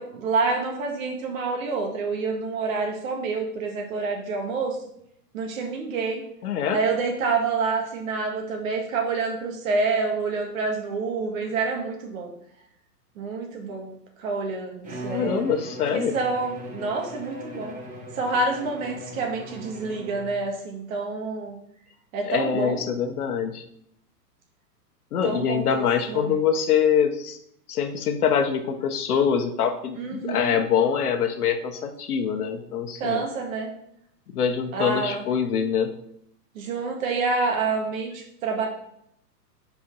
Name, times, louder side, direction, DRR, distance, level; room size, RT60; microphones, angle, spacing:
voice 1, 0.0-4.8 5.3-6.2 6.7-12.3 13.2-13.9 14.2-15.5 15.9-17.7 18.1-21.6 22.1-22.8 25.2-26.4 30.0-30.6 33.0-33.7 34.7-35.2 36.6-38.7, right 4 dB, 55° right, 2 dB, 1.9 m, -28 dB
voice 2, 6.4-6.8 15.1-16.2 22.2-23.6 25.1-27.4 27.7-33.2 34.3-35.9, left 7 dB, 60° left, 7 dB, 1.1 m, -24 dB
Bowed string instrument, 14.8-20.5, equal, 15° right, 1.2 m, -38 dB
5.1 x 4.6 x 5.4 m, 0.73 s
hypercardioid pair, 120°, 50 cm